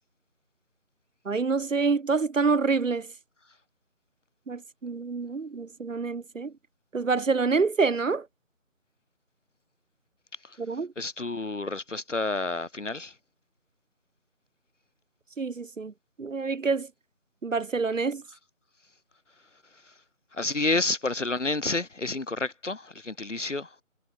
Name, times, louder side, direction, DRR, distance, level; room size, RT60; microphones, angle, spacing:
voice 1, 1.3-3.1 4.5-6.5 6.9-8.3 10.6-10.9 15.4-15.9 16.2-16.9 17.4-18.2, right 4 dB, 70° right, 0.8 m, -27 dB
voice 2, 11.0-13.1 19.8-19.9 20.3-23.7, left 3 dB, 60° left, 1.4 m, -30 dB
figure-of-eight pair, 165°, 41 cm